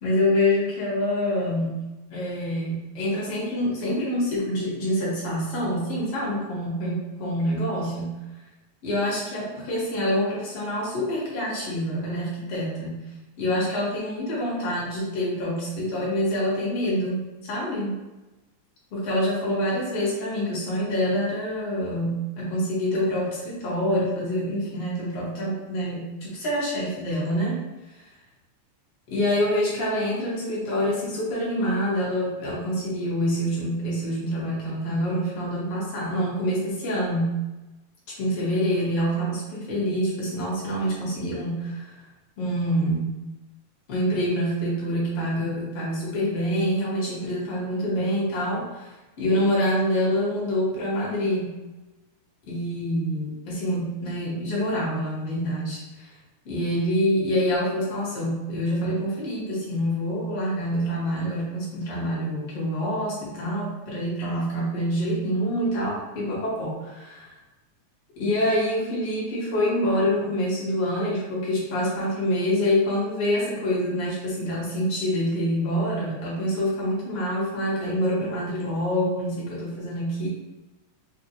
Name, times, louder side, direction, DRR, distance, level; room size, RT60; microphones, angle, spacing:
voice 1, 0.0-1.8 2.1-8.1 8.8-13.0 13.4-18.0 18.9-27.6 29.1-37.4 38.2-42.0 42.4-43.1 43.9-48.9 49.2-51.5 52.5-56.1 56.5-67.3 68.2-80.3, equal, 60° left, -5 dB, 1.9 m, -26 dB
5.3 x 2.3 x 2.9 m, 1.1 s
omnidirectional pair, 3.5 m